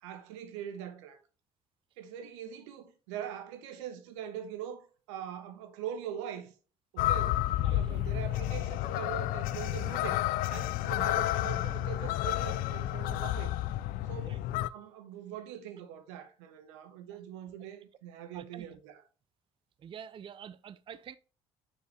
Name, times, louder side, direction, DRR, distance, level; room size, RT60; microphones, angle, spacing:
voice 1, 0.0-1.2 2.0-6.5 6.9-10.2 10.5-13.6 14.0-14.4 14.7-19.0, right 9 dB, 85° right, 0.9 m, -42 dB
sound 1, 7.0-14.7, left 14 dB, 70° left, 0.4 m, -31 dB
voice 2, 7.6-8.0 14.2-14.4 18.3-18.7 19.8-21.2, right 8 dB, 35° right, 0.4 m, -47 dB
6.6 x 4.6 x 3.3 m
hypercardioid pair, 65°, 15 cm